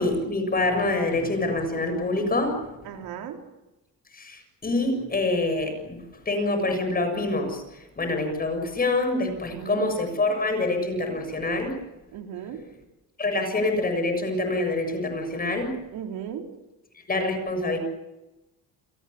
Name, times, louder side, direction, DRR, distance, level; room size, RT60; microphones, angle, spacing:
voice 1, 0.0-2.6 4.1-7.6 8.0-11.8 13.2-15.8 17.1-17.8, left 2 dB, 25° left, 6 dB, 7.1 m, -26 dB
voice 2, 2.8-3.4 9.5-9.9 12.1-12.6 15.9-16.5, right 9 dB, 85° right, 3 dB, 4.1 m, -36 dB
30.0 x 23.0 x 7.0 m, 1.0 s
cardioid pair, 135°, 35 cm